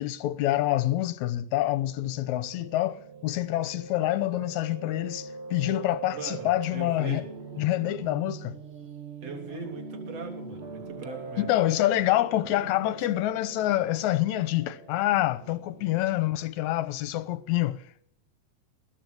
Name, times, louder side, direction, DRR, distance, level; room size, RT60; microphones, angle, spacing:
voice 1, 0.0-3.0 3.2-7.2 7.6-8.6 11.4-18.0, left 15 dB, 75° left, 2.2 m, -27 dB
Piano, 1.6-16.1, right 4 dB, 90° right, 0.5 m, -42 dB
voice 2, 6.1-7.2 9.2-11.4, right 4 dB, 55° right, 4.4 m, -39 dB
20.5 x 10.5 x 6.5 m
omnidirectional pair, 3.5 m